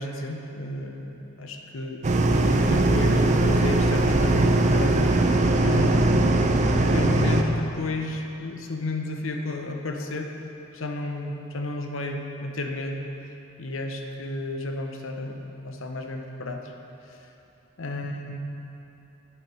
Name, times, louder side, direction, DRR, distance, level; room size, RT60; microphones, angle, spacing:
voice 1, 0.0-1.0 1.4-2.3 2.6-5.1 5.6-6.3 6.9-10.3 10.7-13.1 13.6-16.7 17.1-17.2 17.8-18.4, left 2 dB, 70° left, 3 dB, 0.7 m, -32 dB
sound 1, 2.0-7.4, right 2 dB, 35° right, 0.5 m, -20 dB
8.7 x 6.8 x 4.8 m, 2.9 s
head